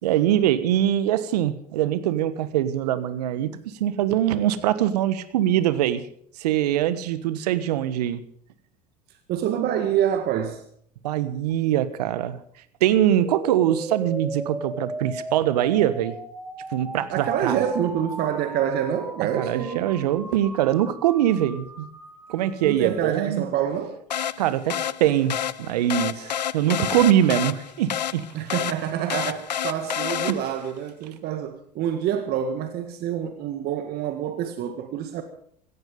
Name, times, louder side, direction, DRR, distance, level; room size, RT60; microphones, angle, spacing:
voice 1, 0.0-6.0 6.4-8.2 11.0-12.4 12.8-16.2 16.7-17.6 19.4-21.9 22.3-23.4 24.4-28.2 30.3-30.4, right 11 dB, 75° right, 1.4 m, -23 dB
voice 2, 9.3-10.6 17.1-20.1 22.6-24.0 28.3-35.2, right 9 dB, 50° right, 1.8 m, -27 dB
sound 1, 13.0-23.0, right 1 dB, 5° right, 3.4 m, -37 dB
sound 2, 24.1-30.7, left 9 dB, 90° left, 0.6 m, -29 dB
17.0 x 14.5 x 5.3 m
hypercardioid pair, 80°, 21 cm